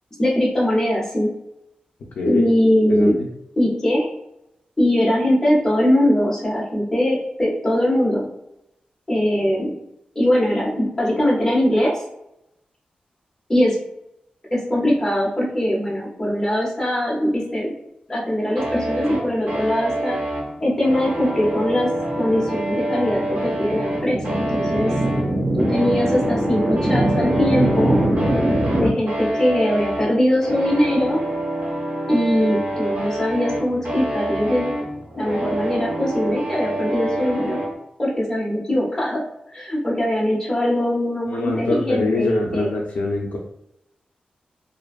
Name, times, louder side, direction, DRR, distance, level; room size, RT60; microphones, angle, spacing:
voice 1, 0.2-1.3 2.3-3.2 3.6-4.1 4.8-8.3 9.1-9.7 10.1-12.0 13.5-13.8 14.5-17.7 18.1-20.2 20.6-21.9 22.2-24.9 25.6-28.0 28.8-31.2 32.1-34.7 35.2-37.6 38.0-39.2 39.5-42.8, left 1 dB, 15° left, -5 dB, 0.7 m, -21 dB
voice 2, 2.9-3.3 41.3-43.4, left 3 dB, 80° left, -1 dB, 0.3 m, -24 dB
sound 1, 18.6-37.7, right 1 dB, 70° right, 1.0 m, -27 dB
sound 2, 21.2-28.9, right 1 dB, 40° right, 1.1 m, -23 dB
2.5 x 2.2 x 2.3 m, 0.83 s
wide cardioid pair, 120°, 3 cm